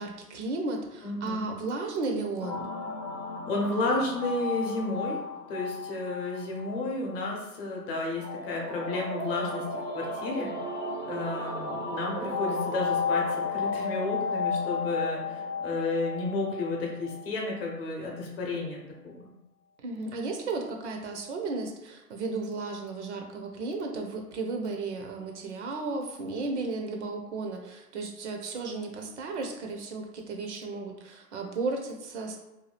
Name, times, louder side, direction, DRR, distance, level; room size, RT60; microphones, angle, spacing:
voice 1, 0.0-2.7 19.8-32.4, right 3 dB, 45° right, 3 dB, 0.5 m, -34 dB
voice 2, 1.0-1.5 3.4-10.5 11.1-18.8 19.0-19.3, left 2 dB, 35° left, -1 dB, 0.8 m, -32 dB
sound 1, 2.4-17.7, left 4 dB, 5° left, 0.4 m, -34 dB
2.7 x 2.3 x 3.2 m, 0.98 s
hypercardioid pair, 135°, 49 cm